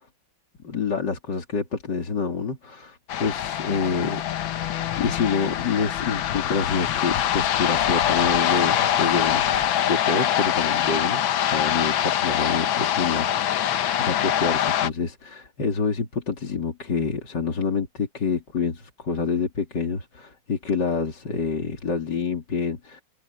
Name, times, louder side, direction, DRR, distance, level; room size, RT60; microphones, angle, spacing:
voice 1, 0.6-9.4 9.8-23.0, left 5 dB, 55° left, 3.3 m, -27 dB
sound 1, 3.1-14.9, left 10 dB, 75° left, 1.7 m, -24 dB
open air
omnidirectional pair, 2.2 m